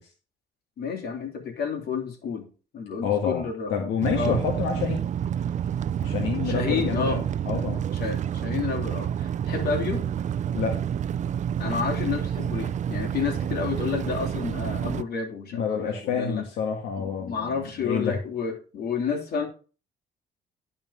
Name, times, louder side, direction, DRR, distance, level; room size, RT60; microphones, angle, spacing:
voice 1, 0.8-2.5 2.7-3.7 4.1-4.4 6.4-7.2 7.9-10.0 11.6-16.5 17.0-19.5, left 6 dB, 60° left, 2 dB, 3.0 m, -30 dB
voice 2, 3.0-3.4 3.7-5.0 6.0-7.8 10.5-10.8 15.5-18.2, left 7 dB, 90° left, 2 dB, 1.7 m, -28 dB
sound 1, 4.0-15.0, right 9 dB, 40° right, 0.5 m, -29 dB
11.0 x 4.6 x 5.6 m, 0.36 s
cardioid pair, 100°, 18 cm